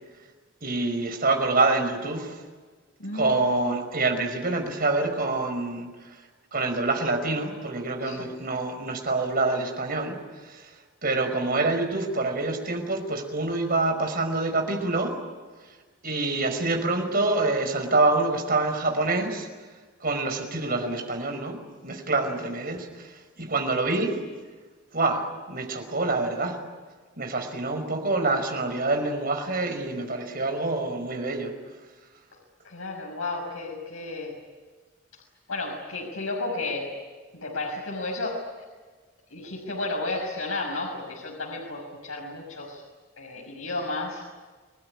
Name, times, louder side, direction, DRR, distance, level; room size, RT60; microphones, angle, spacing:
voice 1, 0.6-2.4 3.1-6.2 6.5-10.2 10.4-10.7 11.0-15.2 16.0-19.5 20.0-21.6 21.8-24.2 24.9-26.6 27.2-31.5, right 2 dB, 45° right, 5 dB, 5.3 m, -26 dB
voice 2, 3.0-3.4 8.0-8.3 32.6-34.3 35.1-35.2 35.5-37.0 37.3-38.4 39.3-42.8 43.2-44.3, left 2 dB, 85° left, -1 dB, 5.9 m, -32 dB
29.5 x 20.0 x 10.0 m, 1.4 s
head